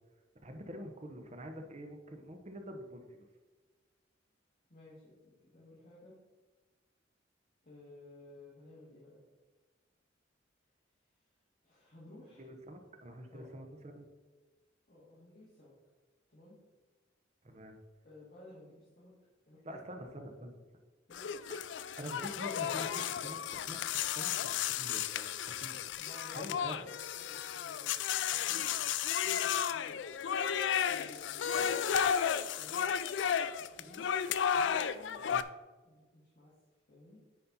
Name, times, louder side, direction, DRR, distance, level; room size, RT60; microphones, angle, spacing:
voice 1, 0.4-3.3 12.4-14.1 17.4-17.8 19.6-20.6 21.5-25.8 26.3-26.8 35.1-35.4, equal, 35° right, 5 dB, 0.9 m, -46 dB
voice 2, 4.7-6.2 7.6-9.2 11.2-11.3 11.6-12.5 13.3-13.5 14.9-15.7 16.3-16.6 18.0-19.1 19.5-19.8 21.1-21.5 26.0-28.0 28.3-28.9 29.2-30.0 30.9-31.9 32.5-32.8 33.6-34.1 34.5-35.3 35.8-36.5 36.9-37.2, left 1 dB, 45° left, -8 dB, 1.9 m, -55 dB
sound 1, 21.1-35.4, left 8 dB, 70° left, 0.3 m, -33 dB
9.5 x 4.2 x 4.1 m, 1.3 s
head